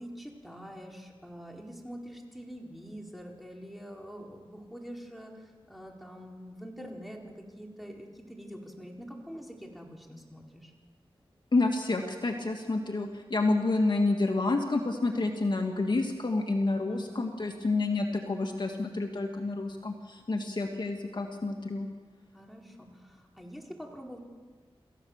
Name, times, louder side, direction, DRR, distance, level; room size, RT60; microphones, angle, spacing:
voice 1, 0.0-10.7 16.9-17.3 22.3-24.2, equal, ahead, 0 dB, 4.3 m, -45 dB
voice 2, 11.5-21.9, left 3 dB, 50° left, 3 dB, 2.0 m, -29 dB
27.0 x 15.0 x 7.3 m, 1.5 s
wide cardioid pair, 65°, 10 cm